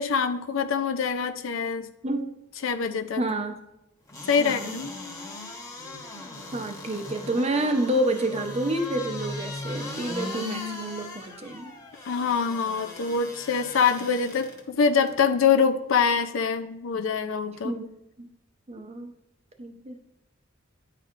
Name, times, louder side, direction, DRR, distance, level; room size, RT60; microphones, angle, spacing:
voice 1, 0.0-1.9 2.6-3.2 4.3-4.9 12.1-17.7, left 6 dB, 70° left, 8 dB, 0.5 m, -24 dB
voice 2, 3.2-3.6 4.4-4.8 5.8-6.0 6.5-11.7 17.6-17.9 18.2-18.3 18.7-19.1 19.6-20.0, right 1 dB, 30° right, 5 dB, 0.7 m, -29 dB
sound 1, 4.1-14.6 15.1-15.2, left 2 dB, 15° left, 0.9 m, -38 dB
9.9 x 4.4 x 2.5 m, 0.86 s
head